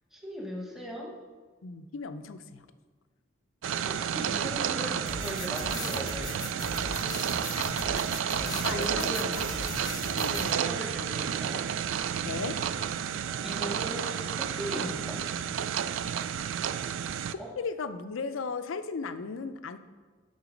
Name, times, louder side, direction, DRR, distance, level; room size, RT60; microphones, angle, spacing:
voice 1, 0.1-1.1 3.9-6.4 8.5-9.4 10.2-11.7 13.4-15.2 17.4-17.5, equal, ahead, -1 dB, 1.0 m, -38 dB
voice 2, 1.6-2.7 7.5-9.4 10.1-10.4 12.2-12.6 17.6-19.8, left 4 dB, 90° left, 11 dB, 0.5 m, -37 dB
sound 1, 3.6-17.3, right 8 dB, 75° right, 0.3 m, -31 dB
sound 2, 5.1-10.5, left 4 dB, 20° left, 0.3 m, -39 dB
10.5 x 4.0 x 5.1 m, 1.5 s
head